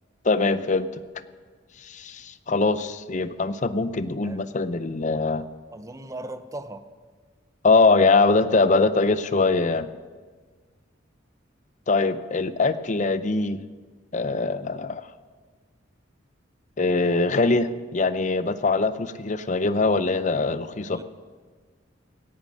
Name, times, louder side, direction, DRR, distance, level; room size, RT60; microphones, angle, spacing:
voice 1, 0.2-1.0 1.8-5.5 7.6-9.9 11.9-13.6 14.1-15.0 16.8-21.0, left 3 dB, 40° left, 13 dB, 0.6 m, -22 dB
voice 2, 5.4-6.8 20.9-21.0, right 1 dB, 15° right, 10 dB, 0.7 m, -38 dB
17.5 x 10.5 x 6.3 m, 1.5 s
head